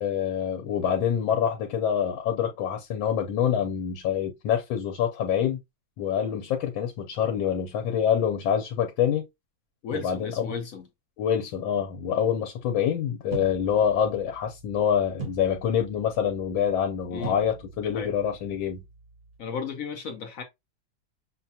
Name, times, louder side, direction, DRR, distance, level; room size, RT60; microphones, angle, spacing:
voice 1, 0.0-5.6 6.0-9.2 9.9-10.5 11.2-18.8, left 8 dB, 85° left, 1.5 m, -26 dB
voice 2, 9.8-10.9 17.1-17.3 17.8-18.1 19.4-20.4, left 6 dB, 65° left, 0.8 m, -34 dB
sound 1, 13.3-19.4, right 5 dB, 55° right, 0.8 m, -43 dB
6.3 x 2.2 x 2.7 m
omnidirectional pair, 2.1 m